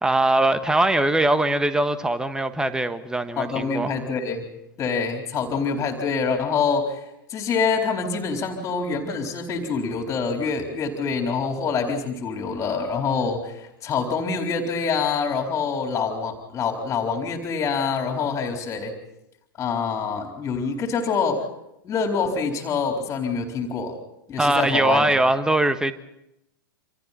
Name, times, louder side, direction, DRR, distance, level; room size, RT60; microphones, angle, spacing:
voice 1, 0.0-3.9 24.4-25.9, right 2 dB, 5° right, 11 dB, 1.5 m, -21 dB
voice 2, 3.4-4.5 4.8-18.9 19.6-21.5 21.8-24.0 24.3-25.1, left 5 dB, 20° left, 3 dB, 4.0 m, -26 dB
28.5 x 27.0 x 4.3 m, 0.83 s
figure-of-eight pair, 100°, 12 cm